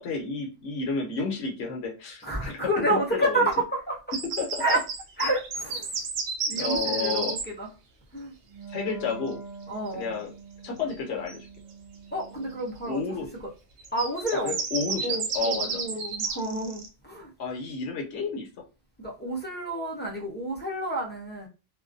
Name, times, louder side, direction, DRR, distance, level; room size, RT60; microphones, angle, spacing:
voice 1, 0.0-3.5 4.2-4.8 6.5-7.4 8.7-9.4 9.9-10.3 10.6-11.5 12.8-13.4 14.4-15.8 17.4-18.5, left 4 dB, 70° left, 0.9 m, -31 dB
voice 2, 2.2-4.0 4.6-4.8 5.2-5.9 6.5-7.7 8.1-8.3 9.7-10.2 12.1-13.0 13.9-14.5 15.0-17.3 19.0-21.5, right 1 dB, 10° left, 0.5 m, -29 dB
sound 1, 4.1-7.4 11.3-11.4 13.8-16.9, right 5 dB, 65° right, 0.8 m, -31 dB
Wind instrument woodwind instrument, 8.4-13.5, right 4 dB, 85° right, 1.1 m, -45 dB
2.4 x 2.2 x 2.4 m
omnidirectional pair, 1.2 m